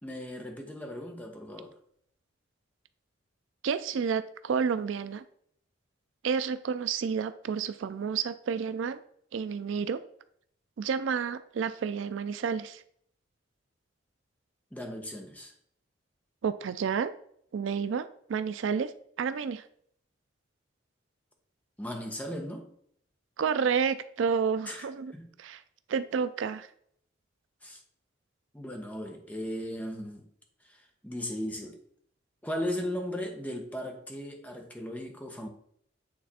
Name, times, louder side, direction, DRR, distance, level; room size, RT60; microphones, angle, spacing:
voice 1, 0.0-1.7 14.7-15.5 21.8-22.7 24.7-24.9 25.1-25.3 27.6-27.8 28.5-30.2 30.6-31.8 32.4-35.5, equal, 10° left, 2 dB, 0.9 m, -37 dB
voice 2, 3.6-5.2 6.2-9.0 9.3-10.0 10.8-12.8 16.4-17.1 17.5-18.9 19.2-19.6 23.4-25.1 25.4-25.6 25.9-26.7, right 6 dB, 75° right, 13 dB, 0.4 m, -30 dB
8.6 x 3.4 x 4.2 m, 0.66 s
head